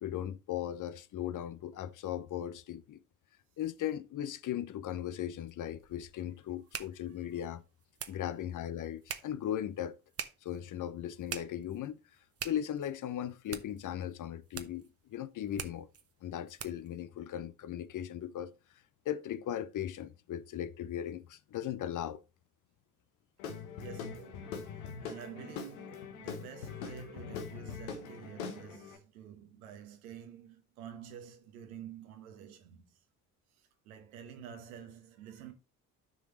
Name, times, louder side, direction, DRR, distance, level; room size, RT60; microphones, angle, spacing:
voice 1, 0.0-3.0 3.6-7.6 8.1-10.0 10.4-12.0 12.4-14.8 15.1-15.9 16.2-18.5 19.1-22.2, left 11 dB, 45° left, 0.7 m, -37 dB
sound 1, 5.4-17.0, right 7 dB, 35° right, 1.0 m, -47 dB
Guitar / Drum, 23.4-29.0, left 6 dB, 80° left, 1.1 m, -42 dB
voice 2, 23.8-33.0 33.5-35.5, right 8 dB, 80° right, 1.3 m, -49 dB
12.5 x 5.1 x 3.1 m
hypercardioid pair, 45°, 43 cm